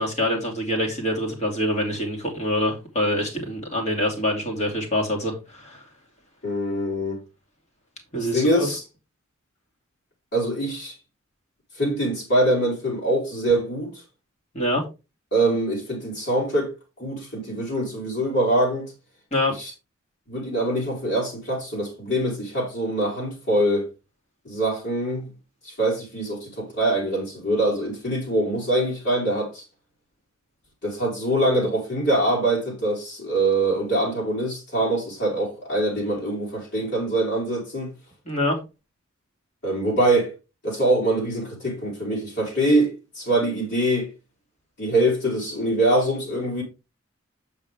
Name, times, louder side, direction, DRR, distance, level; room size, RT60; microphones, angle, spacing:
voice 1, 0.0-5.8 8.1-8.7 14.5-14.8 19.3-19.5 38.3-38.6, left 1 dB, 35° left, 2.6 m, -25 dB
voice 2, 6.4-7.2 8.1-8.8 10.3-10.9 11.7-13.9 15.3-16.7 17.0-18.9 19.6-19.7 20.3-23.9 24.4-25.3 25.6-29.6 30.8-37.9 39.6-40.3 40.6-44.1 44.8-46.6, right 1 dB, 55° left, 4.0 m, -24 dB
8.1 x 6.5 x 3.5 m
head